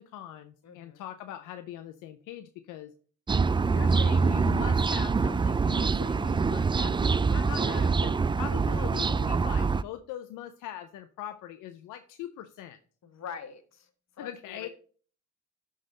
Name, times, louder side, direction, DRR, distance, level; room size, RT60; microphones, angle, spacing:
voice 1, 0.0-2.9 3.6-12.8 14.2-14.7, left 12 dB, 85° left, 9 dB, 0.6 m, -42 dB
voice 2, 0.6-1.0 7.6-7.9 13.0-13.9 14.2-14.7, left 7 dB, 60° left, 9 dB, 1.3 m, -43 dB
sound 1, 3.3-9.8, right 4 dB, 15° right, 0.3 m, -25 dB
11.5 x 4.0 x 3.8 m, 0.42 s
supercardioid pair, 65°, 30 cm